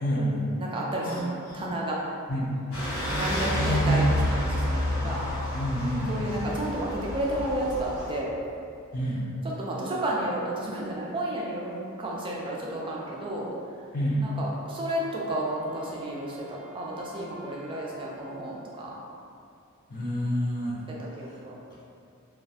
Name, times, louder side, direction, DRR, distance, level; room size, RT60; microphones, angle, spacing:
voice 1, 0.0-0.4 1.0-1.7 2.3-2.5 3.5-4.1 5.5-6.5 8.9-9.2 13.9-14.2 19.9-20.8, equal, 40° left, -7 dB, 0.5 m, -28 dB
voice 2, 0.6-2.0 3.2-5.3 6.1-8.3 9.6-13.5 14.2-19.0 20.9-21.6, right 1 dB, 25° right, -4 dB, 0.3 m, -32 dB
sound 1, 2.7-8.2, left 1 dB, 85° left, 0.7 m, -29 dB
Wind instrument woodwind instrument, 14.5-18.7, right 1 dB, ahead, 0.7 m, -47 dB
2.2 x 2.1 x 2.7 m, 2.4 s
head